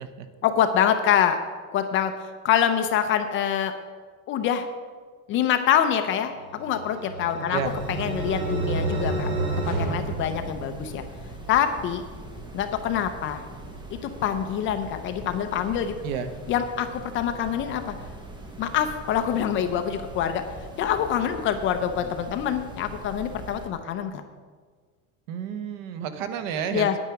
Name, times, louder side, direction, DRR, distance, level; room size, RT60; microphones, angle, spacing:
voice 1, 0.4-1.4 1.7-3.7 4.3-4.7 5.3-7.6 8.0-9.3 9.8-11.0 11.5-12.0 12.5-13.4 14.0-15.9 16.5-17.9 18.6-20.4 20.8-24.2 26.7-27.0, left 9 dB, 30° left, 8 dB, 0.5 m, -25 dB
sound 1, 6.5-11.1, right 3 dB, 60° right, 3.0 m, -29 dB
sound 2, 7.6-23.7, right 1 dB, 10° right, 1.0 m, -42 dB
voice 2, 25.3-27.0, right 7 dB, 90° right, 10 dB, 1.1 m, -31 dB
9.7 x 9.0 x 5.8 m, 1.5 s
cardioid pair, 170°, 39 cm